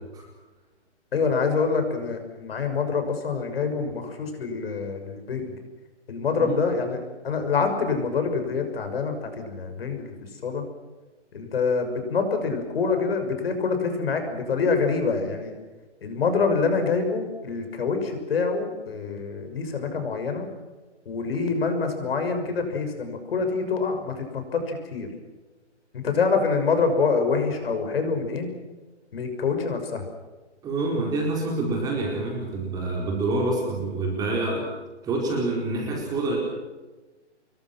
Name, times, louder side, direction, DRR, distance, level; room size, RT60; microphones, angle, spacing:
voice 1, 1.1-5.5 6.1-10.1 10.4-10.6 11.3-15.5 16.0-20.5 21.0-25.1 25.9-28.5 29.1-30.1, left 4 dB, 55° left, 6 dB, 6.4 m, -26 dB
voice 2, 30.6-34.7 35.0-36.4, right 2 dB, 10° right, -1 dB, 4.4 m, -27 dB
27.5 x 22.5 x 6.0 m, 1.2 s
hypercardioid pair, 165°, 35 cm